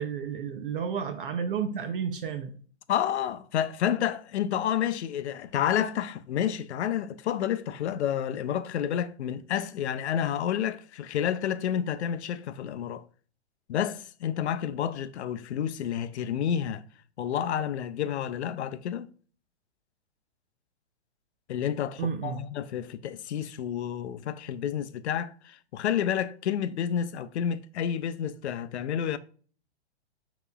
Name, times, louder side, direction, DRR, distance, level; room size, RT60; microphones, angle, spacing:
voice 1, 0.0-2.5 22.0-22.4, right 7 dB, 50° right, 0.6 m, -31 dB
voice 2, 2.9-13.0 13.7-16.8 17.2-19.1 21.5-29.2, left 9 dB, 75° left, 0.5 m, -30 dB
6.6 x 3.0 x 2.3 m
hypercardioid pair, 155°, 34 cm